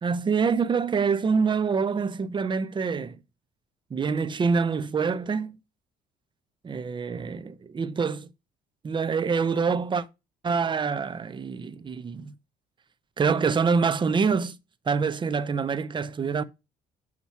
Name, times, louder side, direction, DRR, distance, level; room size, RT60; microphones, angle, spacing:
voice 1, 0.0-3.2 3.9-5.6 6.6-8.3 8.8-10.1 10.4-12.3 13.2-14.6 14.9-16.4, right 5 dB, 30° right, 0.8 m, -26 dB
8.3 x 3.0 x 5.9 m
cardioid pair, 110°, 17 cm